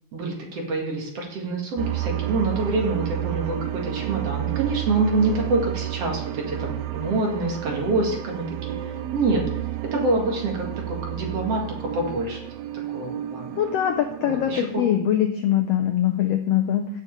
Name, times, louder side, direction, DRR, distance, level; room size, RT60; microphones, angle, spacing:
voice 1, 0.1-9.4 9.9-12.4 12.9-13.5 14.2-14.7, right 2 dB, 55° right, 0 dB, 2.6 m, -26 dB
sound 1, 1.8-14.7, right 14 dB, 80° right, 1.6 m, -31 dB
voice 2, 13.6-16.9, left 10 dB, 85° left, 5 dB, 1.4 m, -22 dB
16.5 x 7.1 x 3.2 m, 0.71 s
omnidirectional pair, 3.7 m